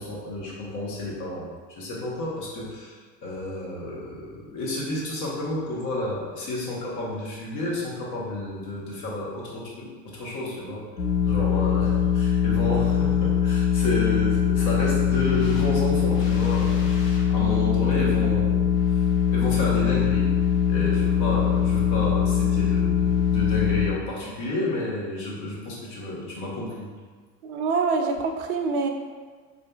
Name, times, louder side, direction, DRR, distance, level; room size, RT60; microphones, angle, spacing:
voice 1, 0.0-10.8 11.2-18.7 19.3-20.4 20.7-26.9, left 1 dB, 40° left, -4 dB, 0.9 m, -31 dB
sound 1, 11.0-23.9, left 8 dB, 85° left, 0.6 m, -22 dB
voice 2, 27.4-28.9, right 4 dB, 65° right, 4 dB, 0.5 m, -25 dB
3.6 x 2.5 x 2.3 m, 1.4 s
figure-of-eight pair, 80°, 47 cm